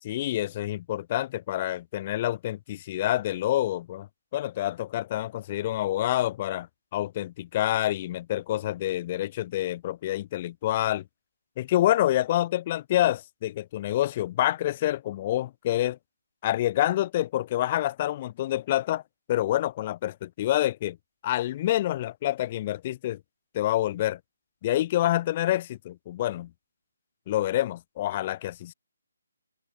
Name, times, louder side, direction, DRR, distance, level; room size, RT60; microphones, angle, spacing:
voice 1, 0.0-4.1 4.3-6.7 6.9-11.0 11.6-16.0 16.4-19.0 19.3-21.0 21.2-23.2 23.5-24.2 24.6-26.5 27.3-28.7, left 14 dB, 30° left, 5.8 m, -27 dB
figure-of-eight pair, 155°, 0 cm